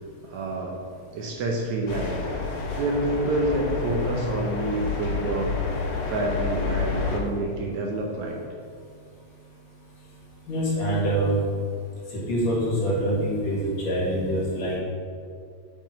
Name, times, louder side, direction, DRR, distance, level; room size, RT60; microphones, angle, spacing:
voice 1, 0.3-0.7 1.1-2.2 2.8-5.6 6.1-8.4, right 2 dB, 70° right, 0 dB, 2.0 m, -27 dB
sound 1, 1.9-7.2, left 4 dB, 80° left, 2.7 m, -29 dB
voice 2, 10.5-11.4 12.1-14.8, right 1 dB, 60° left, -4 dB, 2.7 m, -25 dB
7.3 x 5.2 x 5.2 m, 2.2 s
omnidirectional pair, 3.8 m